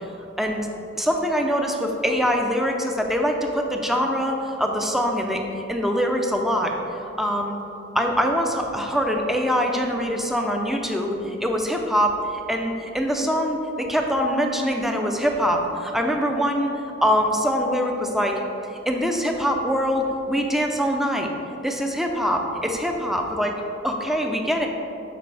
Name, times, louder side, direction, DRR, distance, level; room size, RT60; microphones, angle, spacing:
voice 1, 0.4-0.7 1.0-5.4 5.7-6.7 7.2-7.6 7.9-16.7 17.0-18.4 18.9-21.3 21.6-24.7, equal, ahead, 2 dB, 0.6 m, -23 dB
12.0 x 4.6 x 3.4 m, 2.8 s
head